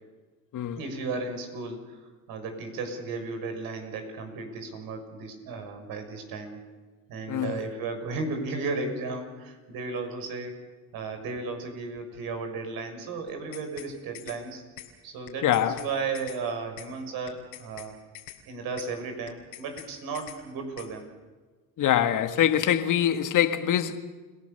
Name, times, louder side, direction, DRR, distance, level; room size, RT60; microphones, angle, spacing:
voice 1, 0.8-2.0 2.3-6.6 7.1-10.6 10.9-14.6 15.0-17.9 18.5-21.1, right 4 dB, 65° right, 6.3 m, -34 dB
voice 2, 7.3-7.6 15.4-15.8 21.8-24.0, left 10 dB, 55° left, 1.8 m, -24 dB
sound 1, 13.3-13.9 14.1-14.4 14.8-14.9 15.3-15.9 16.1-16.4 16.8-16.9 17.3-17.9 18.1-18.4 18.8-18.9 19.3-19.9 20.1-20.4 20.8-20.9, left 15 dB, 80° left, 3.9 m, -44 dB
30.0 x 17.5 x 6.9 m
supercardioid pair, 90°, 38 cm